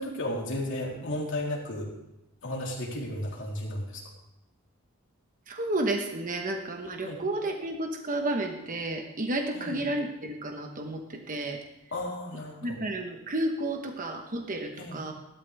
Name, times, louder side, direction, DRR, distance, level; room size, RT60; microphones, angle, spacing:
voice 1, 0.0-1.9 2.4-4.0 7.0-7.2 9.5-9.8 11.9-12.8 14.8-15.1, left 1 dB, 60° left, -3 dB, 3.4 m, -34 dB
voice 2, 5.5-11.6 12.6-15.1, right 1 dB, 40° right, 3 dB, 1.1 m, -31 dB
17.5 x 12.0 x 3.4 m, 0.92 s
head